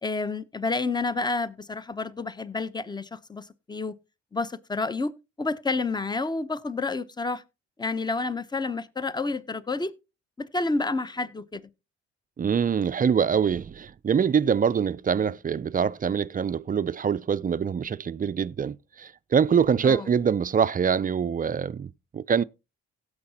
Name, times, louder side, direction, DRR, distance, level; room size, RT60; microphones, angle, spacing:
voice 1, 0.0-4.0 4.3-5.1 5.4-7.4 7.8-9.9 10.4-11.7 19.8-20.1, left 3 dB, 15° left, 0.8 m, -29 dB
voice 2, 12.4-22.4, right 7 dB, 25° right, 0.4 m, -24 dB
17.0 x 6.9 x 2.8 m
hypercardioid pair, 50°, 32 cm